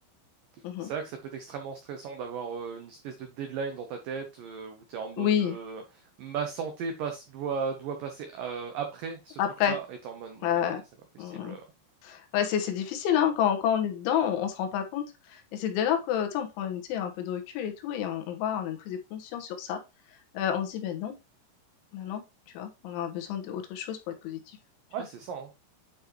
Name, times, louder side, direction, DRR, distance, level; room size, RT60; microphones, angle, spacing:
voice 1, 0.8-9.4 9.7-10.5 11.2-11.6 24.9-25.5, right 6 dB, 85° right, 5 dB, 1.9 m, -36 dB
voice 2, 5.2-5.6 9.4-9.8 10.4-10.8 11.2-11.6 12.0-19.8 20.3-21.2 21.9-22.2 22.6-24.6, left 9 dB, 85° left, 5 dB, 3.6 m, -29 dB
9.3 x 4.9 x 3.0 m, 0.27 s
omnidirectional pair, 5.3 m